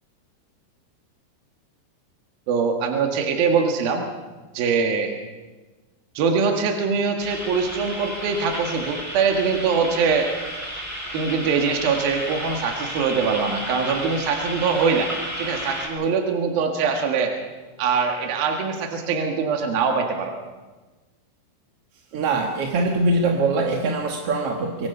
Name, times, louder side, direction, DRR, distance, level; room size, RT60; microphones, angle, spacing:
voice 1, 2.5-4.0 4.5-5.1 6.2-10.3 11.1-15.1 15.4-17.3 17.8-20.4, right 5 dB, 70° right, 3 dB, 3.5 m, -23 dB
sound 1, 7.2-15.9, equal, 5° right, 6.4 m, -32 dB
voice 2, 22.1-24.9, right 2 dB, 55° right, 2 dB, 1.9 m, -22 dB
26.0 x 23.5 x 5.5 m, 1.2 s
omnidirectional pair, 4.6 m